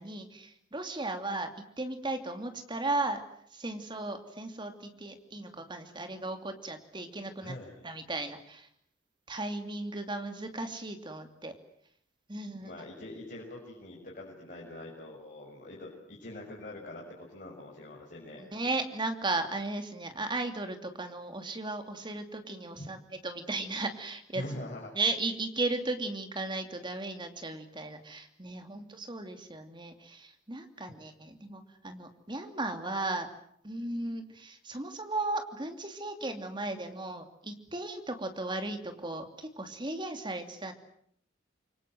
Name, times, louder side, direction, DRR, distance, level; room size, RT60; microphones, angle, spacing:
voice 1, 0.0-1.5 1.8-3.2 3.5-7.5 7.8-8.7 9.3-11.5 12.3-12.7 18.4-23.0 23.2-24.4 24.9-33.3 33.6-40.7, right 2 dB, 25° right, 6 dB, 2.8 m, -36 dB
voice 2, 7.4-7.9 12.6-18.4 22.8-22.9 24.3-24.9, left 1 dB, 45° left, -3 dB, 6.4 m, -43 dB
27.5 x 24.5 x 7.9 m, 0.67 s
head